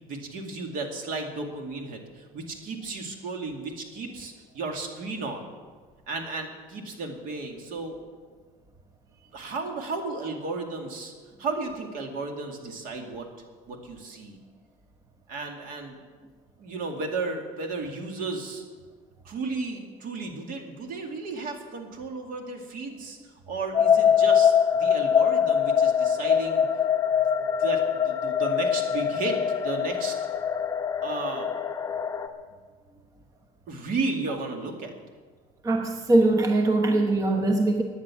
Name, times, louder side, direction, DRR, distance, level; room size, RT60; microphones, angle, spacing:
voice 1, 0.1-5.5 6.1-8.0 9.3-11.1 11.4-13.3 13.7-14.4 15.3-16.0 16.6-18.6 19.2-23.2 23.5-26.7 27.4-29.4 29.6-30.2 31.0-31.5 33.7-34.9, right 3 dB, 60° right, 3 dB, 2.4 m, -34 dB
sound 1, 23.7-32.3, left 8 dB, 20° left, 0.8 m, -23 dB
voice 2, 35.6-37.8, right 2 dB, 20° right, 4 dB, 1.0 m, -22 dB
17.0 x 9.8 x 6.0 m, 1.5 s
cardioid pair, 140°, 16 cm